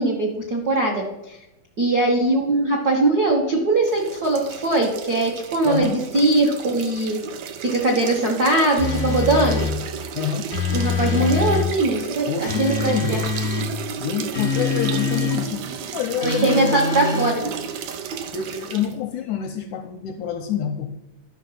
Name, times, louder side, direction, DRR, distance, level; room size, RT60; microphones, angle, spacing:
voice 1, 0.0-1.4 1.8-7.2 7.6-9.7 10.7-13.2 16.2-17.4, right 2 dB, 70° right, -2 dB, 0.9 m, -21 dB
sound 1, 3.8-19.0, right 7 dB, 85° right, 1.4 m, -33 dB
voice 2, 5.7-6.0 10.2-10.5 12.3-13.1 14.0-16.8 17.0-17.2 18.3-20.9, left 8 dB, 80° left, 6 dB, 1.7 m, -27 dB
sound 2, 8.8-9.8 10.5-11.7 12.5-13.7 14.3-15.4 16.2-17.3, left 5 dB, 65° left, 0.8 m, -24 dB
11.5 x 6.0 x 5.8 m, 0.92 s
omnidirectional pair, 4.0 m